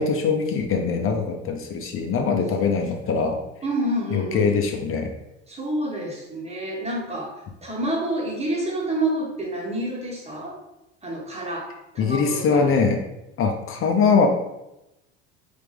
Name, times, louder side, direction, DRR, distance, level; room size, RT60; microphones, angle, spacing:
voice 1, 0.0-3.4 4.1-5.1 12.0-13.0 13.4-14.3, left 5 dB, 40° left, 4 dB, 0.6 m, -22 dB
voice 2, 3.6-4.5 5.5-10.6 11.0-12.7, right 1 dB, 20° right, -2 dB, 1.4 m, -28 dB
4.0 x 3.3 x 3.4 m, 0.90 s
supercardioid pair, 90°, 33 cm